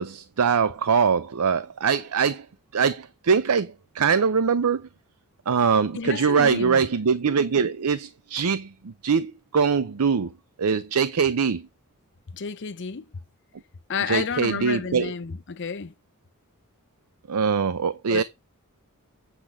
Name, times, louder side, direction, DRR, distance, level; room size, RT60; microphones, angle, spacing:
voice 1, 0.0-2.5 2.7-4.9 5.5-10.3 10.6-11.7 14.1-15.1 17.3-18.2, right 6 dB, 80° right, 0.6 m, -23 dB
voice 2, 5.9-6.8 12.3-13.1 13.9-15.9 18.1-18.2, left 5 dB, 55° left, 0.7 m, -31 dB
8.3 x 5.0 x 7.3 m
head